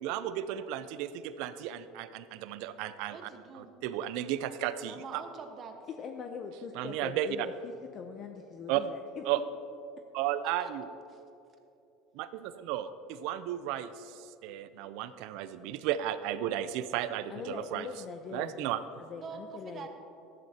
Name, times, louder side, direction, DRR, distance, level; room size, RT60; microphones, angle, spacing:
voice 1, 0.0-3.2 3.5-5.2 6.7-7.5 8.7-8.9 9.2-9.4 10.1-10.8 12.2-17.9 18.3-18.8, right 12 dB, 70° right, 13 dB, 0.5 m, -34 dB
voice 2, 3.1-3.7 4.8-5.7 10.6-10.7 11.1-11.2 19.2-19.9, right 5 dB, 35° right, 5 dB, 1.2 m, -44 dB
voice 3, 6.0-9.2 17.3-18.7 19.0-19.9, left 5 dB, 40° left, 5 dB, 0.6 m, -42 dB
13.5 x 10.5 x 2.8 m, 2.7 s
supercardioid pair, 115°, 0 cm